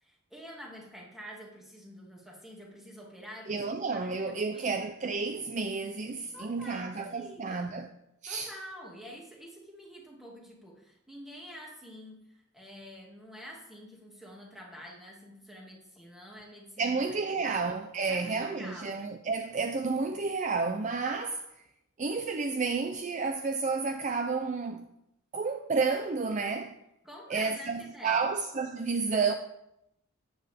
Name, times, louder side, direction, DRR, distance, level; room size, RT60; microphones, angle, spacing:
voice 1, 0.0-4.7 6.3-7.8 8.3-12.2 12.5-16.9 17.3-17.6 18.1-19.0 27.0-28.2, equal, ahead, 2.1 m, -47 dB
voice 2, 3.5-7.9 8.2-8.5 16.8-21.4 22.0-24.9 25.3-26.8 27.3-29.3, right 4 dB, 35° right, 0.5 m, -31 dB
13.0 x 8.7 x 3.5 m
head